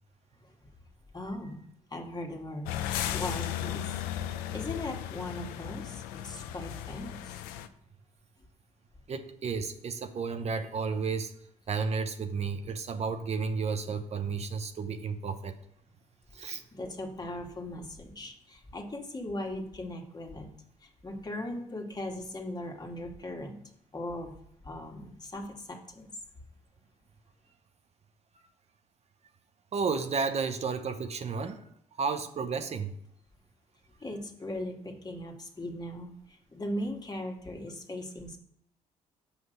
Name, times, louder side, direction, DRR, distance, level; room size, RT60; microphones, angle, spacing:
voice 1, 1.1-1.6 1.9-2.7 3.1-7.4 8.4-8.5 16.7-20.5 20.8-23.6 23.9-24.3 24.6-26.1 34.0-38.4, left 1 dB, 30° left, 2 dB, 1.9 m, -39 dB
sound 1, 2.7-7.7, left 11 dB, 85° left, 0.6 m, -35 dB
voice 2, 9.1-11.3 11.7-15.6 16.3-16.6 29.7-31.7 31.9-32.9, right 5 dB, 50° right, 7 dB, 0.9 m, -32 dB
6.2 x 5.8 x 6.5 m, 0.71 s
supercardioid pair, 60°, 15 cm